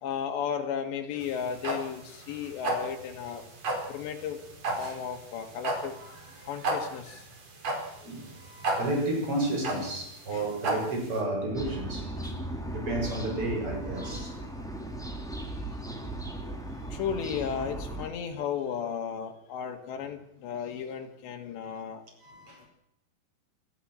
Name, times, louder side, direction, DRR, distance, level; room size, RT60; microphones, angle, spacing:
voice 1, 0.0-3.4 3.9-4.4 4.8-6.0 6.5-7.3 10.3-10.5 12.2-12.3 16.5-16.6 16.8-22.0, left 7 dB, 90° left, 4 dB, 4.1 m, -34 dB
sound 1, 1.2-11.2, right 2 dB, 50° right, 6.0 m, -33 dB
voice 2, 6.0-6.7 8.0-12.4 12.7-14.4 15.0-15.1 16.8-16.9 22.2-22.7, right 1 dB, 30° right, 2 dB, 7.3 m, -33 dB
sound 2, 11.5-18.1, right 1 dB, ahead, 2.5 m, -37 dB
27.5 x 13.5 x 7.6 m, 0.77 s
omnidirectional pair, 4.9 m